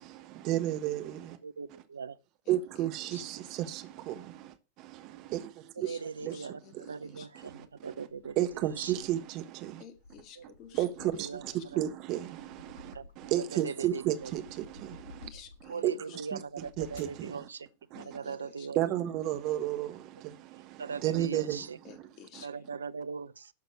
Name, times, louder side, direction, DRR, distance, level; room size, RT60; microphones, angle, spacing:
voice 1, 0.0-1.4 1.7-1.8 2.5-9.8 10.7-15.3 15.6-17.5 17.9-18.2 18.7-22.1 22.3-22.4, right 13 dB, 40° right, 1.3 m, -34 dB
voice 2, 1.4-2.1 5.8-6.6 6.9-7.5 7.8-8.3 11.3-11.4 12.9-13.0 13.8-14.0 15.7-17.7 18.0-18.8 20.8-21.6 22.4-23.4, right 5 dB, 70° right, 0.7 m, -39 dB
voice 3, 2.5-3.2 5.8-7.5 9.8-11.1 15.2-15.8 17.9-18.7 21.8-22.6, left 8 dB, 40° left, 1.9 m, -53 dB
sound 1, 7.5-9.3 9.8-13.6 14.0-15.8 16.4-17.3, left 2 dB, 90° right, 6.9 m, -54 dB
12.0 x 6.6 x 6.4 m
figure-of-eight pair, 90°, 0 cm